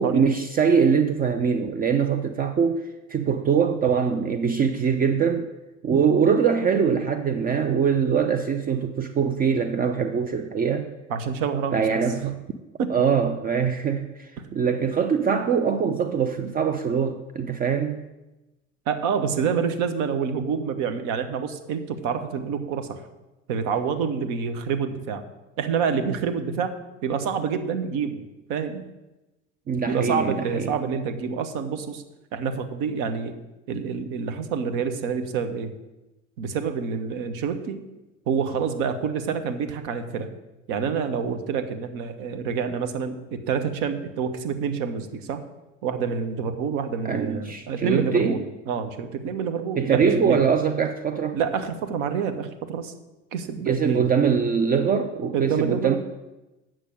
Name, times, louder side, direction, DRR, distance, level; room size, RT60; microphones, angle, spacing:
voice 1, 0.0-5.5 5.8-10.9 11.7-12.4 12.9-18.0 29.7-30.7 47.0-48.4 49.8-51.4 53.7-56.0, right 6 dB, 25° right, 7 dB, 0.5 m, -23 dB
voice 2, 11.1-11.8 12.8-13.0 18.9-23.0 23.5-25.2 25.6-26.7 27.0-28.2 28.5-28.8 29.8-32.0 32.3-33.3 33.7-35.7 36.4-37.8 38.3-40.3 40.7-45.4 45.8-50.4 51.3-52.9 53.3-54.1 55.3-56.0, right 6 dB, 55° right, 8 dB, 1.1 m, -27 dB
8.3 x 6.2 x 6.2 m, 1.0 s
hypercardioid pair, 75°, 38 cm